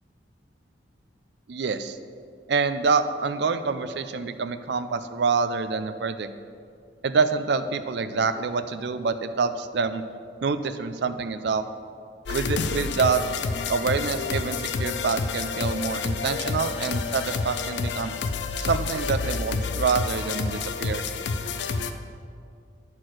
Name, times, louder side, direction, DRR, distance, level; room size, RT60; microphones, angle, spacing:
voice 1, 1.5-2.0 2.5-6.3 7.0-10.0 10.4-11.6 12.3-13.2 13.7-18.1 18.6-21.0, right 5 dB, 65° right, 10 dB, 0.4 m, -26 dB
sound 1, 12.3-21.9, left 4 dB, 70° left, 0.5 m, -29 dB
9.4 x 4.4 x 6.1 m, 2.3 s
head